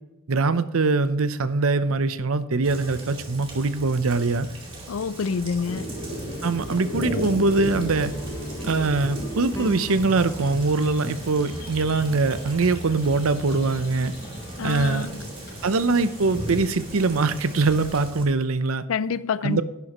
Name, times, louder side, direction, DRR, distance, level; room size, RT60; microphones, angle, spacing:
voice 1, 0.3-4.5 6.4-8.1 8.6-14.1 14.6-15.1 15.6-18.8 19.4-19.6, right 3 dB, 85° right, 0.7 m, -23 dB
Rain, 2.6-18.2, right 2 dB, 25° right, 2.5 m, -40 dB
voice 2, 4.9-5.9 14.6-15.2 18.9-19.6, left 5 dB, 75° left, 0.4 m, -27 dB
sound 1, 5.7-18.0, left 1 dB, 45° left, 4.2 m, -36 dB
sound 2, 8.0-13.1 13.5-13.9, left 1 dB, 15° left, 0.8 m, -39 dB
11.0 x 11.0 x 3.0 m
head